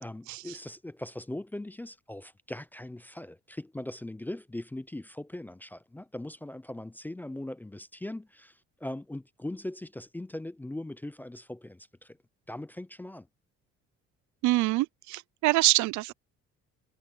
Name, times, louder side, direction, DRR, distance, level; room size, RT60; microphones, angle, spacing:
voice 1, 0.0-12.2 12.5-13.3, left 1 dB, 5° left, 0.4 m, -40 dB
voice 2, 14.4-16.1, right 20 dB, 80° right, 0.5 m, -25 dB
cardioid pair, 150°, 29 cm